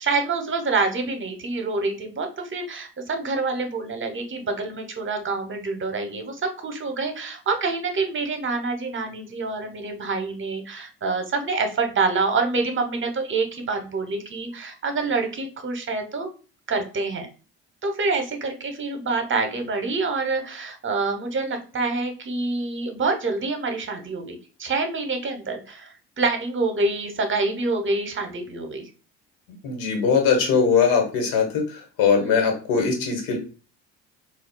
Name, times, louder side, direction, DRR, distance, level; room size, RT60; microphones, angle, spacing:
voice 1, 0.0-16.3 16.7-17.3 17.8-28.9 32.2-32.5, right 3 dB, 35° right, 5 dB, 0.9 m, -26 dB
voice 2, 29.6-33.4, left 6 dB, 75° left, 2 dB, 1.3 m, -21 dB
4.0 x 2.5 x 2.2 m, 0.36 s
supercardioid pair, 70°, 35 cm